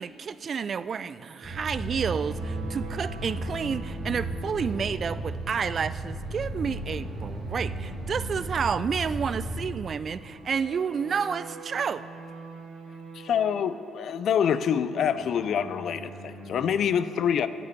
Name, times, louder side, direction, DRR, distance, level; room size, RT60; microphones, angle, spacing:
voice 1, 0.0-12.0, right 6 dB, 50° right, 15 dB, 0.3 m, -30 dB
sound 1, 1.2-16.9, right 3 dB, 65° right, 1.4 m, -45 dB
sound 2, 1.4-9.7, right 1 dB, 25° left, 2.4 m, -34 dB
voice 2, 13.1-17.5, left 8 dB, 65° left, 13 dB, 0.4 m, -26 dB
17.5 x 6.1 x 4.6 m, 2.4 s
cardioid pair, 90°, 0 cm